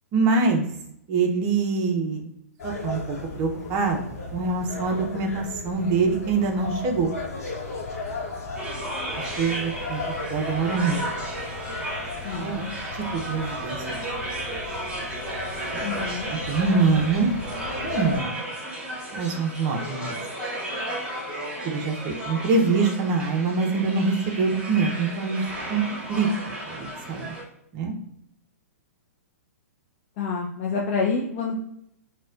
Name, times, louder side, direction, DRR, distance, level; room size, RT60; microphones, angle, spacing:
voice 1, 0.1-0.7 1.1-2.3 2.6-7.1 9.4-11.0 12.3-12.7 13.1-14.0 16.3-17.3 17.8-18.4 19.1-20.2 21.6-25.4 25.7-26.3 26.7-27.4 27.7-27.9, right 4 dB, 35° right, 3 dB, 0.7 m, -24 dB
sound 1, 2.6-18.2, left 3 dB, 70° left, 0.8 m, -36 dB
sound 2, 8.6-27.4, right 1 dB, 10° right, 0.9 m, -34 dB
voice 2, 12.2-12.7 15.8-16.3 30.2-31.5, left 5 dB, 40° left, -2 dB, 0.4 m, -28 dB
4.0 x 2.2 x 2.4 m, 0.75 s
figure-of-eight pair, 115°, 8 cm